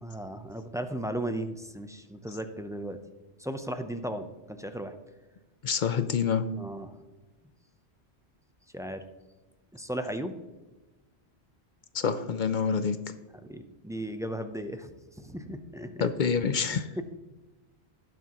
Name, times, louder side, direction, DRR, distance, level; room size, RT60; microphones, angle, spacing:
voice 1, 0.0-3.0 3.4-4.9 6.6-6.9 8.7-9.0 9.7-10.4 13.5-14.9 15.2-15.9 17.0-17.1, right 1 dB, 5° right, 8 dB, 0.4 m, -36 dB
voice 2, 5.6-6.4 11.9-13.0 16.0-16.9, left 6 dB, 55° left, 11 dB, 0.7 m, -27 dB
18.5 x 6.1 x 3.0 m, 1.1 s
omnidirectional pair, 1.1 m